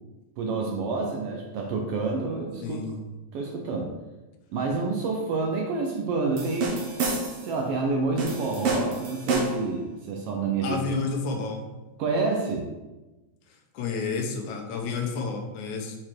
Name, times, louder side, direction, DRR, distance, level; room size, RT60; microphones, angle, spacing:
voice 1, 0.4-2.8 3.3-3.9 4.5-6.7 7.4-10.8 12.0-12.7, right 3 dB, 85° right, 1 dB, 1.3 m, -28 dB
voice 2, 2.6-3.0 10.6-11.6 13.5-16.0, left 4 dB, 75° left, 2 dB, 2.3 m, -30 dB
sound 1, 6.4-7.5 8.2-9.7, right 3 dB, 60° right, 1.7 m, -28 dB
6.5 x 4.3 x 4.4 m, 1.1 s
omnidirectional pair, 3.6 m